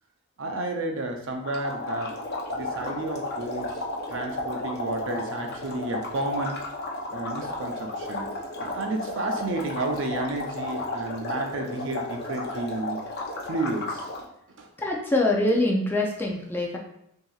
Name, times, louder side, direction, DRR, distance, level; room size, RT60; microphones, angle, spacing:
voice 1, 0.4-2.1 2.5-3.7 4.1-6.6 7.1-8.3 8.6-13.0 13.5-14.1 14.6-14.7, right 2 dB, 60° right, 3 dB, 0.6 m, -31 dB
sound 1, 1.4-14.3, left 2 dB, 45° left, 0.7 m, -33 dB
voice 2, 14.8-16.8, left 2 dB, 10° left, -1 dB, 0.4 m, -24 dB
5.8 x 2.7 x 2.4 m, 0.76 s
head